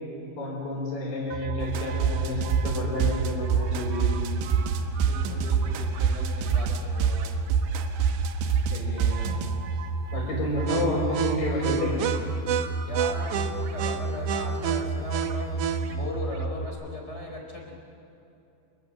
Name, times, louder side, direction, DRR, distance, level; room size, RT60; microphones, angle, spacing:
voice 1, 0.4-4.1 8.7-9.4 10.1-12.2, left 1 dB, 55° left, -8 dB, 6.8 m, -30 dB
sound 1, 1.3-16.7, right 4 dB, 65° right, 2.1 m, -30 dB
sound 2, 1.6-9.5, right 7 dB, 85° right, 3.5 m, -27 dB
voice 2, 5.0-7.3 12.9-17.7, left 1 dB, 15° left, 0 dB, 3.9 m, -38 dB
27.5 x 20.5 x 7.8 m, 2.8 s
omnidirectional pair, 5.0 m